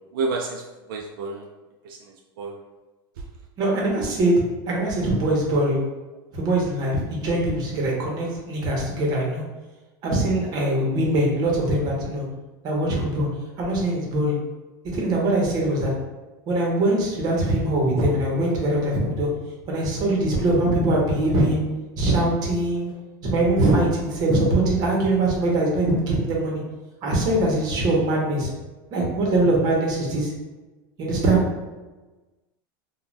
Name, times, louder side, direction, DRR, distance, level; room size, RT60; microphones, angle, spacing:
voice 1, 0.1-1.5 1.8-2.6 3.2-3.3, right 3 dB, 80° right, 0 dB, 0.4 m, -30 dB
voice 2, 3.6-5.8 6.3-9.4 10.0-12.3 12.6-13.3 13.6-14.4 14.9-15.9 16.5-19.3 19.7-21.7 22.0-22.9 23.2-26.6 27.0-28.5 28.9-30.3 31.0-31.4, right 1 dB, 35° right, -2 dB, 0.8 m, -22 dB
2.4 x 2.2 x 3.1 m, 1.2 s
supercardioid pair, 145°, 11 cm